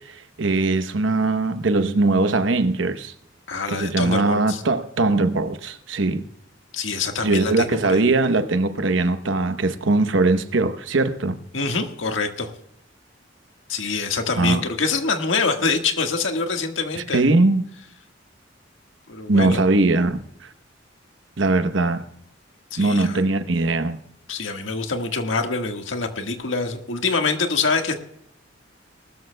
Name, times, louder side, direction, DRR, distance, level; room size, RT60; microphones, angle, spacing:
voice 1, 0.1-3.1 3.7-6.3 7.2-11.4 14.4-14.6 17.0-17.6 19.3-20.2 21.4-22.0 22.8-24.0, right 2 dB, 75° right, 0.9 m, -20 dB
voice 2, 3.5-4.6 6.7-8.0 11.5-12.5 13.7-17.2 19.1-19.6 22.7-23.2 24.3-28.0, left 4 dB, 85° left, 1.6 m, -25 dB
20.0 x 13.0 x 2.2 m
head